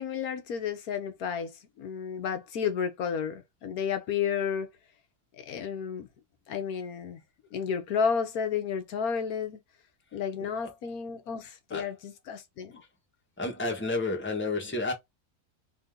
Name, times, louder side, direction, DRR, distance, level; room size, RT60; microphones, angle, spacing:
voice 1, 0.0-4.7 5.4-6.1 6.5-7.2 7.5-9.6 10.1-12.7, left 7 dB, 80° left, 1.3 m, -32 dB
voice 2, 13.4-14.9, left 2 dB, 10° left, 1.0 m, -30 dB
3.6 x 2.7 x 3.6 m
omnidirectional pair, 1.5 m